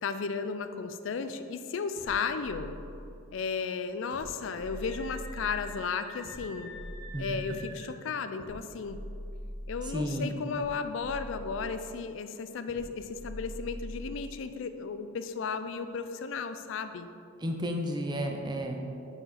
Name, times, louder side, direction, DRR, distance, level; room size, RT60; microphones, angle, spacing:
voice 1, 0.0-2.8 3.3-6.7 7.2-9.0 9.7-17.1, left 5 dB, 65° left, 10 dB, 0.4 m, -34 dB
sound 1, 2.0-3.3 4.1-5.7 6.2-7.7 8.4-10.0 10.5-11.9 12.7-14.3, equal, 75° right, 1.6 m, -43 dB
Screaming, 4.6-7.9, left 1 dB, 20° left, 1.4 m, -48 dB
voice 2, 9.8-10.4 17.4-18.8, equal, 20° right, 3 dB, 0.6 m, -32 dB
7.0 x 6.0 x 4.1 m, 2.6 s
head